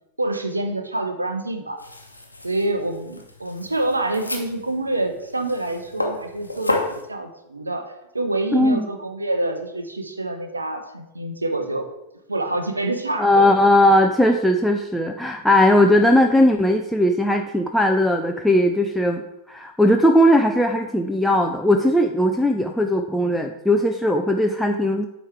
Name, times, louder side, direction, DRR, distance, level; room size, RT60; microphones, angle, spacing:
voice 1, 0.2-1.8 2.4-11.9 12.3-13.5, right 2 dB, 80° right, 6 dB, 0.7 m, -26 dB
sound 1, 1.8-7.0, left 2 dB, 85° left, 0.8 m, -31 dB
voice 2, 8.5-8.9 13.2-25.1, left 1 dB, ahead, 3 dB, 0.4 m, -18 dB
8.8 x 3.1 x 4.6 m, 0.88 s
figure-of-eight pair, 90°, 0 cm